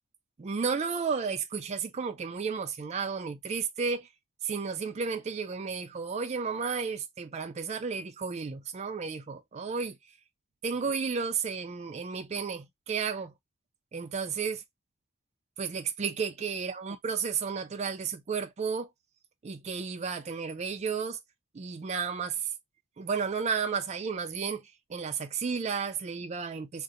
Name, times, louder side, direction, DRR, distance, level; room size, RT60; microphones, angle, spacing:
voice 1, 0.4-4.1 4.4-10.0 10.6-13.3 13.9-14.6 15.6-18.9 19.4-21.2 21.5-22.5 23.0-24.6 24.9-26.8, right 5 dB, 30° right, 0.3 m, -32 dB
2.7 x 2.2 x 3.6 m
head